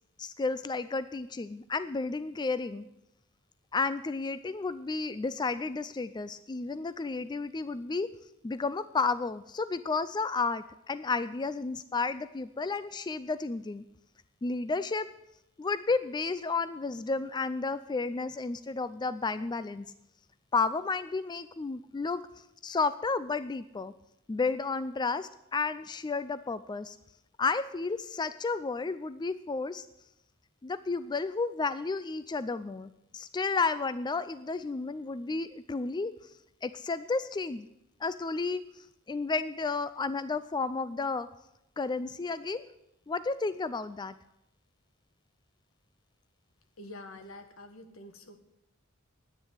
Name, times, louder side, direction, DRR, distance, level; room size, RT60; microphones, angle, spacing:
voice 1, 0.2-2.8 3.7-8.1 8.4-13.8 14.4-15.1 15.6-19.9 20.5-23.9 24.3-27.0 27.4-29.9 30.6-36.3 36.6-37.7 38.0-41.3 41.8-42.6 43.1-44.1, left 4 dB, 20° left, 13 dB, 0.4 m, -32 dB
voice 2, 46.8-48.4, left 1 dB, 80° left, 7 dB, 1.6 m, -47 dB
10.5 x 9.5 x 8.1 m, 0.84 s
head